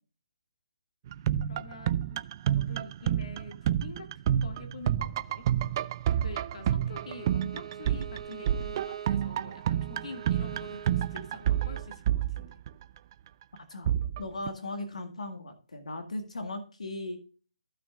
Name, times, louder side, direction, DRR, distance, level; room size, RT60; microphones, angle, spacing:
sound 1, 1.1-13.0 13.9-14.5, right 10 dB, 35° right, 0.4 m, -29 dB
voice 1, 1.5-2.2 2.5-5.5 6.2-12.6, left 2 dB, 60° left, 4 dB, 2.1 m, -46 dB
Bowed string instrument, 6.9-11.9, right 8 dB, 70° right, 1.1 m, -44 dB
voice 2, 14.2-17.2, left 2 dB, 85° left, 5 dB, 1.8 m, -37 dB
15.0 x 6.0 x 2.5 m, 0.36 s
hypercardioid pair, 155°, 4 cm